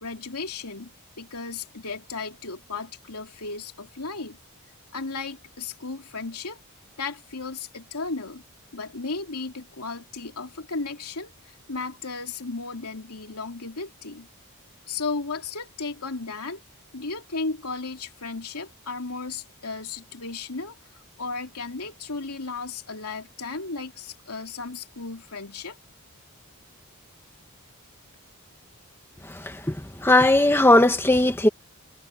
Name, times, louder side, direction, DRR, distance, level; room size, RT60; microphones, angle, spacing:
voice 1, 0.0-4.4 4.9-6.6 7.0-8.4 8.7-14.3 14.9-16.6 16.9-20.8 21.2-25.8, left 4 dB, 80° left, 3.0 m, -35 dB
voice 2, 29.2-31.5, left 1 dB, 10° left, 1.7 m, -19 dB
head